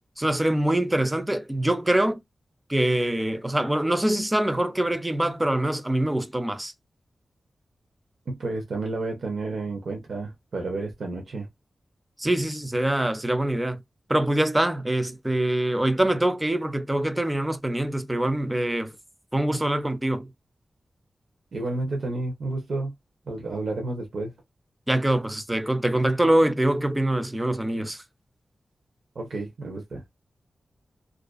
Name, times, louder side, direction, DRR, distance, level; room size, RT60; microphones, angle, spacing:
voice 1, 0.2-2.2 2.7-6.7 12.2-13.8 14.1-18.9 19.3-20.3 24.9-28.0, right 1 dB, 10° right, 0.3 m, -24 dB
voice 2, 8.3-11.5 21.5-22.9 23.3-24.3 29.1-30.0, right 2 dB, 70° right, 0.7 m, -31 dB
2.4 x 2.2 x 2.3 m
wide cardioid pair, 140°, 0 cm